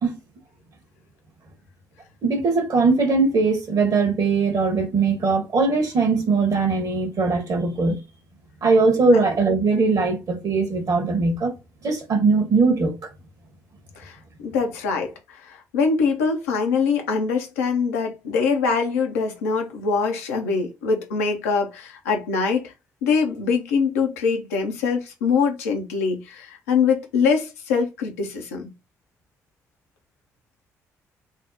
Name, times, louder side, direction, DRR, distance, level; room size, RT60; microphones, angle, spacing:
voice 1, 2.2-8.0 8.6-11.5 11.8-13.0, right 4 dB, 50° right, 1.1 m, -20 dB
voice 2, 14.4-22.7 23.0-28.7, left 5 dB, 75° left, 0.6 m, -23 dB
3.5 x 2.0 x 2.7 m
figure-of-eight pair, 40°, 8 cm